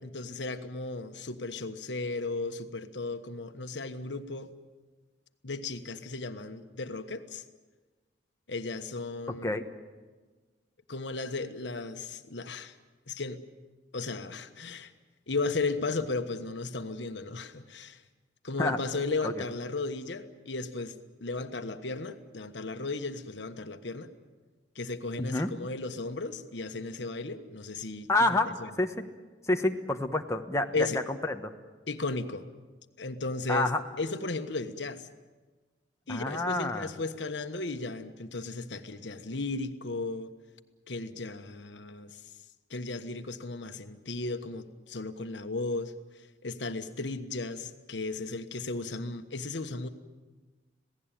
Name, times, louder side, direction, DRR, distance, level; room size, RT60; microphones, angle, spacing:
voice 1, 0.0-4.5 5.4-7.4 8.5-9.6 10.9-12.8 13.1-13.4 13.9-14.9 15.3-18.0 18.4-20.9 21.2-24.1 24.7-28.1 28.6-28.7 30.7-31.0 31.9-32.5 33.0-33.7 34.0-35.1 36.1-40.3 40.9-42.2 42.7-45.9 46.4-49.9, left 3 dB, 75° left, 8 dB, 1.3 m, -35 dB
voice 2, 25.2-25.5 28.1-28.5 28.8-28.9 29.5-31.5 33.5-33.8 36.1-36.9, left 2 dB, 15° left, 4 dB, 1.2 m, -28 dB
27.0 x 18.0 x 9.0 m, 1.3 s
head